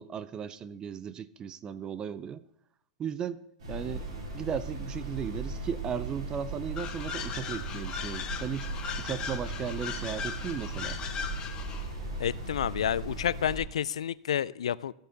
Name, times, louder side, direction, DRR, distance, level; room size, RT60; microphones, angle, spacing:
voice 1, 0.0-2.4 3.0-4.1 4.3-8.7 9.0-11.0, right 8 dB, 25° right, 0.4 m, -36 dB
sound 1, 3.6-13.6, right 2 dB, 75° right, 4.6 m, -37 dB
sound 2, 6.8-11.9, left 7 dB, 25° left, 1.1 m, -38 dB
voice 2, 12.2-14.9, left 9 dB, 80° left, 0.4 m, -30 dB
14.5 x 6.7 x 4.0 m
hypercardioid pair, 120°, 3 cm